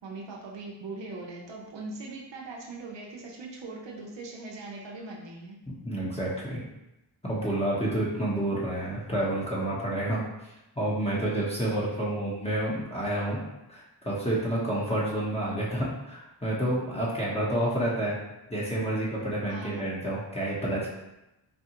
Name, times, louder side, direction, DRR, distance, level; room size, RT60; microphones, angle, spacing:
voice 1, 0.0-5.6 19.5-20.0, right 3 dB, 70° right, -2 dB, 0.8 m, -40 dB
voice 2, 5.8-6.6 7.2-10.2 10.8-13.4 13.7-18.2 18.5-20.9, right 1 dB, 15° left, -7 dB, 1.0 m, -29 dB
4.2 x 2.3 x 2.9 m, 0.93 s
cardioid pair, 55°, 45 cm